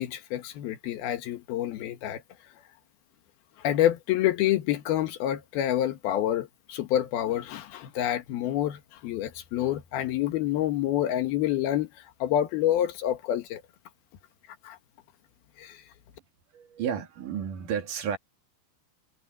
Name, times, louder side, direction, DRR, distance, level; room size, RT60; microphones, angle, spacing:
voice 1, 0.0-2.2 3.6-11.9 12.2-13.6 14.6-14.8 15.6-15.8, left 12 dB, 85° left, 3.3 m, -27 dB
voice 2, 16.5-18.2, right 8 dB, 65° right, 3.5 m, -32 dB
omnidirectional pair, 4.2 m